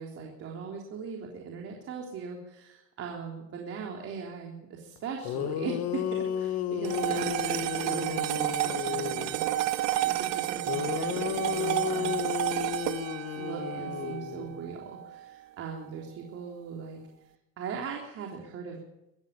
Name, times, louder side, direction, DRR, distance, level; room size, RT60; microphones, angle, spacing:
voice 1, 0.0-9.5 10.0-12.3 13.3-17.0 17.6-18.8, right 6 dB, 50° right, 0 dB, 3.8 m, -39 dB
sound 1, 5.0-5.1 5.2-9.4 10.7-14.7, left 10 dB, 55° left, 1.8 m, -33 dB
sound 2, 6.8-15.4, right 14 dB, 75° right, 1.8 m, -31 dB
22.5 x 15.0 x 9.9 m, 0.92 s
cardioid pair, 140°, 31 cm